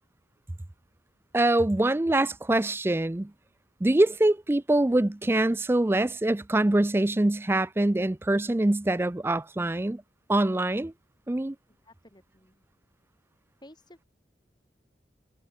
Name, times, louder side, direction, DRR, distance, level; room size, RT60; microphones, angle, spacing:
voice 1, 1.3-3.3 3.8-10.0 10.3-10.9 11.3-11.6, right 1 dB, 15° right, 0.4 m, -24 dB
voice 2, 11.8-12.6 13.6-14.1, left 1 dB, 25° left, 6.4 m, -54 dB
head